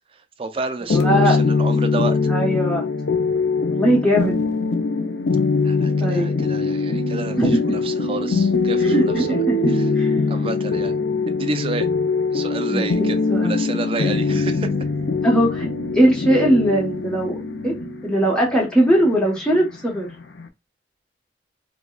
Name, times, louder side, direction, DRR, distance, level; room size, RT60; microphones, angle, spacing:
voice 1, 0.4-2.2 5.6-9.3 10.3-10.9 11.3-11.9 12.3-14.7, right 3 dB, 30° right, 0.4 m, -30 dB
sound 1, 0.9-20.5, left 4 dB, 80° left, 0.6 m, -22 dB
voice 2, 0.9-1.4 2.3-2.8 3.7-4.4 6.0-6.4 7.4-7.8 8.8-10.2 12.7-13.5 14.3-14.4 15.2-15.7 15.9-17.3 17.6-17.7 18.0-20.1, right 1 dB, 5° left, 1.1 m, -20 dB
4.8 x 2.3 x 2.3 m
head